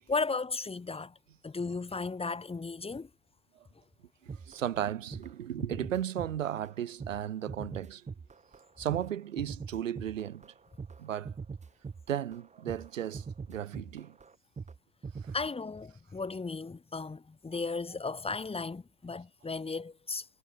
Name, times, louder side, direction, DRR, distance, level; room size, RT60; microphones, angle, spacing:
voice 1, 0.1-1.1 1.4-3.1 15.3-20.3, left 4 dB, 15° left, 5.7 m, -35 dB
sound 1, 4.3-4.8 5.1-5.3 5.6-6.7 7.0-14.8 15.0-15.5, right 5 dB, 20° right, 3.8 m, -42 dB
voice 2, 4.5-8.0 8.8-10.5 11.0-11.3 12.1-14.1 15.2-15.3, right 10 dB, 85° right, 5.5 m, -35 dB
hypercardioid pair, 95°, 38 cm